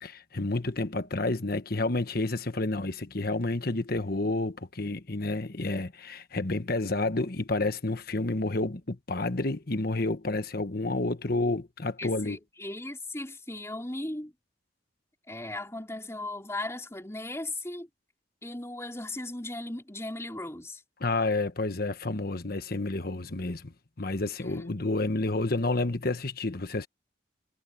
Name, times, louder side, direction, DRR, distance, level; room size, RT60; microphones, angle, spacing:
voice 1, 0.0-12.4 21.0-26.9, left 2 dB, 50° left, 1.3 m, -30 dB
voice 2, 12.0-14.3 15.3-17.9 18.4-20.8, left 2 dB, 15° left, 4.6 m, -37 dB
head